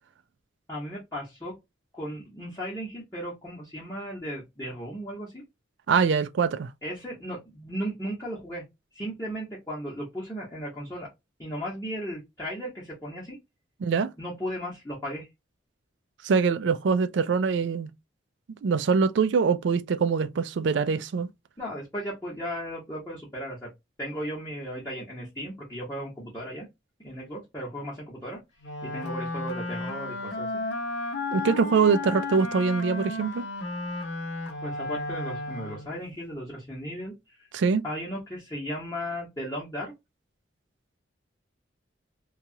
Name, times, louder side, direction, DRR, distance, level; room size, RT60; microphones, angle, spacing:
voice 1, 0.7-1.5 1.9-5.4 6.8-8.6 8.9-11.1 11.4-13.4 14.2-15.3 21.6-23.7 24.0-26.7 27.0-28.4 28.9-30.5 34.6-37.5 37.8-39.9, equal, 15° left, 0.9 m, -36 dB
voice 2, 5.9-6.7 13.8-14.1 16.2-17.9 18.6-21.3 31.3-33.5 37.5-37.8, right 5 dB, 70° right, 0.3 m, -23 dB
Wind instrument woodwind instrument, 28.6-36.0, left 2 dB, 70° left, 0.7 m, -33 dB
2.9 x 2.3 x 2.7 m
head